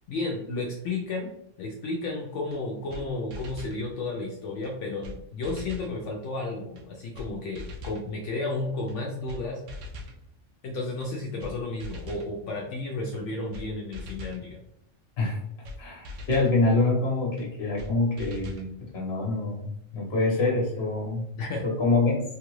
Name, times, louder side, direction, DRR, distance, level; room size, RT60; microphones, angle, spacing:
voice 1, 0.1-1.3 1.6-9.6 10.6-14.6 21.4-21.7, left 2 dB, 70° left, -1 dB, 0.9 m, -32 dB
sound 1, 2.5-2.6 2.9-3.0 3.3-3.8 4.6-4.7 5.0-5.2 5.4-5.9 6.8-6.9 7.1-7.3 7.5-8.0 8.9-9.0 9.3-9.4 9.7-10.2 11.0-11.1 11.4-11.5 11.8-12.3 13.1-13.2 13.5-13.7 13.9-14.4 15.3-15.4 15.6-15.8 16.0-16.5 17.4-17.5 17.8-17.9 18.2-18.7, left 2 dB, 80° right, 0.9 m, -40 dB
voice 2, 15.8-21.2 21.6-22.2, left 3 dB, 55° left, -3 dB, 1.2 m, -25 dB
3.2 x 2.3 x 3.0 m, 0.77 s
omnidirectional pair, 1.3 m